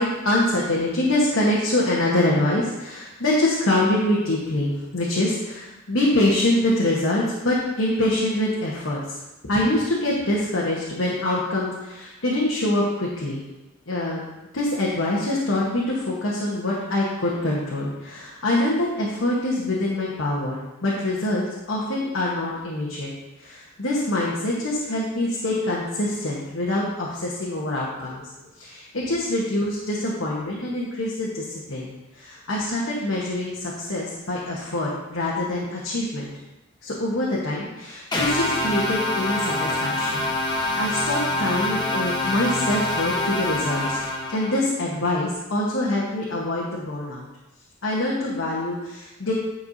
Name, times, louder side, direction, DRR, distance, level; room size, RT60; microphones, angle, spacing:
voice 1, 0.0-9.2 9.4-13.4 13.9-14.2 14.5-23.1 23.4-28.2 28.6-36.3 36.8-44.0 44.3-47.3 47.8-49.3, left 1 dB, 75° left, -5 dB, 1.2 m, -25 dB
sound 1, 38.1-44.6, left 1 dB, 20° left, 1.0 m, -25 dB
10.5 x 5.4 x 2.7 m, 1.0 s
head